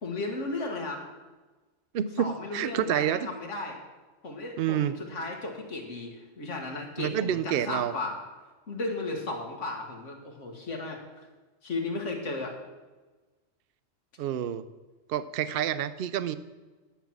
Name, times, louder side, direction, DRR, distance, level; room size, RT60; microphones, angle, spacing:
voice 1, 0.0-1.0 2.2-3.8 4.2-8.2 8.7-11.3 11.6-12.6, left 2 dB, 85° left, 2 dB, 2.0 m, -35 dB
voice 2, 1.9-3.3 4.6-4.9 7.0-7.9 14.2-14.7 15.1-16.4, right 10 dB, 60° right, 14 dB, 0.7 m, -28 dB
11.0 x 6.0 x 7.3 m, 1.2 s
omnidirectional pair, 1.2 m